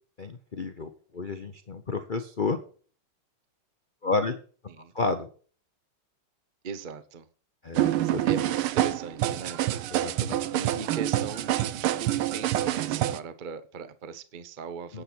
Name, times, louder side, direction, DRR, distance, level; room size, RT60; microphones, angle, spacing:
voice 1, 0.2-2.6 4.0-4.3 4.9-5.3 7.6-8.2 9.9-10.4 14.9-15.0, left 3 dB, 90° left, 8 dB, 0.4 m, -31 dB
voice 2, 6.6-7.3 7.9-9.7 10.1-15.0, right 5 dB, 60° right, 12 dB, 0.5 m, -39 dB
sound 1, 7.7-13.2, right 13 dB, 85° right, 1.6 m, -27 dB
10.0 x 8.2 x 6.1 m, 0.41 s
omnidirectional pair, 2.3 m